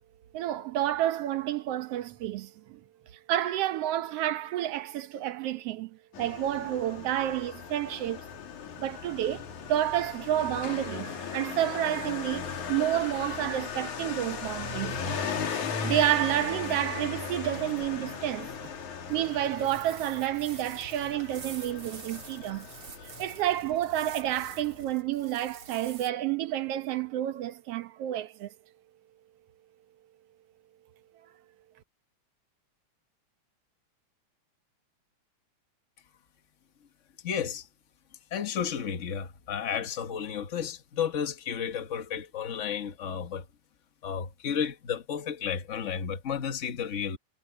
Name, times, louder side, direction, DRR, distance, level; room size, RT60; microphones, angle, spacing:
voice 1, 0.3-2.8 3.3-8.2 8.8-15.0 15.8-18.5 19.1-22.7 23.2-28.5, right 12 dB, 65° right, 1.7 m, -30 dB
Motorcycle, 6.1-24.9, left 6 dB, 90° left, 4.0 m, -37 dB
sound 1, 15.6-26.1, right 5 dB, 50° right, 3.6 m, -49 dB
voice 2, 37.2-37.7 38.3-43.5 44.0-47.2, left 7 dB, 65° left, 0.7 m, -32 dB
omnidirectional pair, 3.3 m